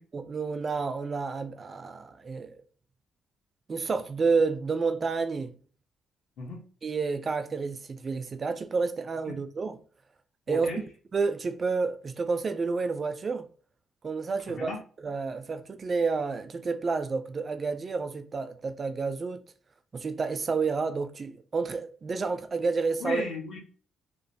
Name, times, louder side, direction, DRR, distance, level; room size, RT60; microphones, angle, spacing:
voice 1, 0.1-2.6 3.7-5.5 6.8-9.8 10.5-10.7 11.1-13.5 14.0-14.7 15.0-19.4 19.9-23.2, right 4 dB, 40° right, 0.3 m, -30 dB
voice 2, 10.5-10.8 14.5-14.8 23.0-23.6, left 3 dB, 65° left, 1.0 m, -35 dB
2.9 x 2.0 x 2.6 m
cardioid pair, 90°, 0 cm